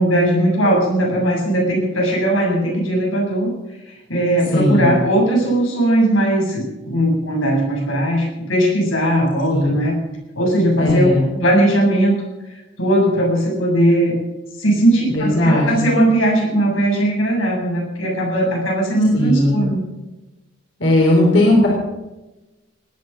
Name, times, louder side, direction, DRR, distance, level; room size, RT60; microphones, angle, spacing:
voice 1, 0.0-3.5 3.9-10.0 10.4-12.2 12.8-14.1 14.6-19.8, right 1 dB, 90° left, -1 dB, 7.6 m, -18 dB
voice 2, 4.5-5.0 9.5-9.8 10.8-11.3 15.1-15.9 19.1-19.6 20.8-21.7, left 1 dB, 65° left, -2 dB, 4.0 m, -16 dB
19.5 x 9.7 x 7.1 m, 1.0 s
head